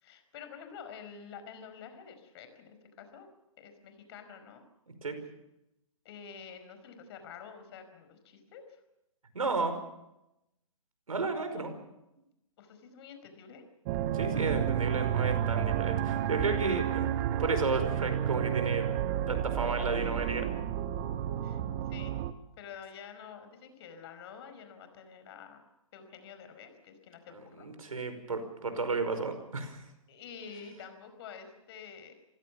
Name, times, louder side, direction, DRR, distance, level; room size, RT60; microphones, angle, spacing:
voice 1, 0.0-3.3 3.6-4.6 6.0-8.6 11.5-11.7 12.6-13.6 21.4-21.6 21.9-22.2 22.6-25.6 25.9-27.7 30.1-32.1, left 7 dB, 50° left, 8 dB, 5.1 m, -48 dB
voice 2, 9.3-9.8 11.1-11.7 14.1-17.1 17.4-18.9 19.3-20.5 27.6-29.8, right 3 dB, 90° right, 8 dB, 5.1 m, -32 dB
sound 1, 13.9-22.3, right 10 dB, 35° right, 1.4 m, -31 dB
27.5 x 16.5 x 7.3 m, 0.89 s
hypercardioid pair, 135°, 18 cm